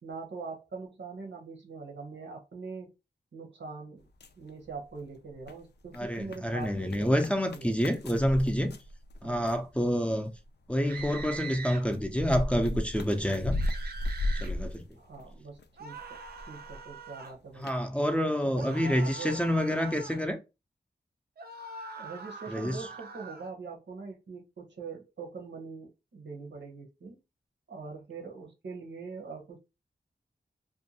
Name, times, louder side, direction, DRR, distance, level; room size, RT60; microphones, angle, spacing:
voice 1, 0.0-2.9 3.3-4.1 4.4-7.7 9.2-9.5 14.9-17.7 18.2-19.4 19.7-20.0 22.0-27.2 27.7-29.6, right 4 dB, 85° right, 0.8 m, -43 dB
sound 1, 4.0-5.0 5.3-9.7 10.3-15.6 15.9-16.9 17.2-17.3 17.6-17.8, left 1 dB, 70° left, 0.4 m, -35 dB
voice 2, 5.9-8.7 9.2-10.3 10.7-13.6 14.4-14.8 17.6-20.4 22.5-22.8, equal, 5° left, 0.5 m, -28 dB
sound 2, 10.8-11.8 13.5-14.5 15.8-17.4 18.5-20.2 21.4-23.5, right 3 dB, 60° right, 0.5 m, -43 dB
2.5 x 2.2 x 2.8 m
wide cardioid pair, 55°, 18 cm